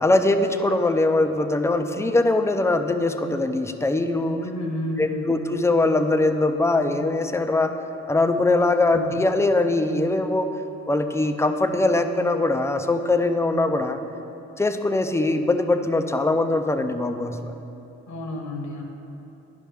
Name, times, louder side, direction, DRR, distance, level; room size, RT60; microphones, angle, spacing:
voice 1, 0.0-4.4 5.0-7.7 8.1-10.5 10.9-14.0 14.6-17.5, left 2 dB, 10° left, 7 dB, 0.4 m, -22 dB
voice 2, 4.4-5.4 8.9-9.1 18.1-18.8, left 1 dB, 70° left, 1 dB, 1.4 m, -31 dB
11.0 x 5.5 x 3.4 m, 2.9 s
cardioid pair, 90°, 30 cm